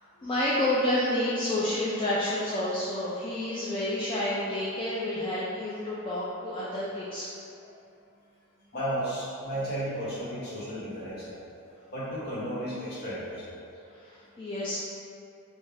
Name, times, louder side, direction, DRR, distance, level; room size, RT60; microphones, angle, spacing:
voice 1, 0.2-7.3 7.6-7.7 13.9-14.8, left 1 dB, 25° left, -8 dB, 0.3 m, -29 dB
voice 2, 8.7-11.3 11.9-13.5, equal, 45° left, -9 dB, 1.1 m, -33 dB
3.3 x 2.7 x 3.4 m, 2.6 s
head